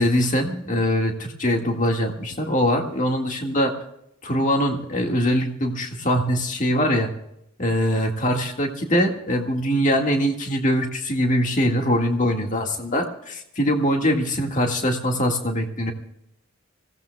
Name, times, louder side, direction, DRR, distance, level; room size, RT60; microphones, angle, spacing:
voice 1, 0.0-3.7 4.2-7.1 7.6-15.9, equal, 40° left, 2 dB, 1.9 m, -22 dB
26.0 x 17.0 x 2.3 m, 0.79 s
head